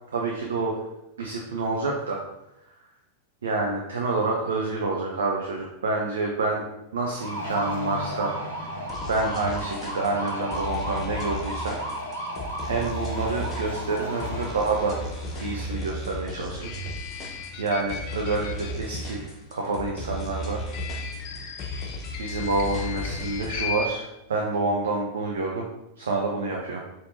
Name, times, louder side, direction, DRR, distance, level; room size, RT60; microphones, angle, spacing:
voice 1, 0.1-0.8 1.2-2.2 3.4-6.6 6.9-8.3 9.1-11.8 12.6-15.0 15.4-16.7 17.6-20.6 22.2-25.7 26.0-26.8, right 3 dB, 65° right, 0 dB, 0.6 m, -28 dB
sound 1, 7.1-15.6, equal, 70° left, 1.5 m, -34 dB
sound 2, 8.9-23.7, left 1 dB, 25° left, 0.9 m, -35 dB
sound 3, 16.6-19.1 20.6-23.9, left 6 dB, 50° left, 0.5 m, -37 dB
4.9 x 4.3 x 2.6 m, 0.89 s
figure-of-eight pair, 90°, 0 cm